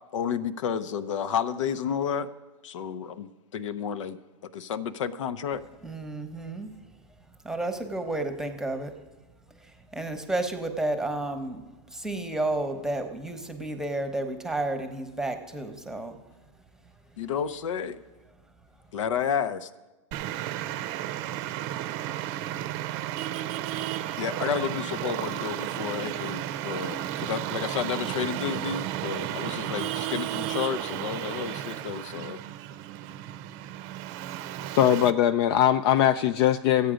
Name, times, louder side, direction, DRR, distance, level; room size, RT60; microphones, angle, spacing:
voice 1, 0.1-2.3 2.6-4.2 4.5-5.6 17.2-18.0 18.9-19.7 24.2-32.4, left 7 dB, 80° left, 12 dB, 0.7 m, -31 dB
voice 2, 5.8-6.7 7.4-8.9 9.6-16.2, right 2 dB, 5° right, 7 dB, 1.0 m, -31 dB
Traffic noise roadway noise, 20.1-35.1, right 12 dB, 40° right, 0.6 m, -33 dB
voice 3, 34.7-36.9, left 11 dB, 50° left, 12 dB, 0.4 m, -21 dB
14.5 x 8.2 x 5.1 m, 1.2 s
hypercardioid pair, 135°, 16 cm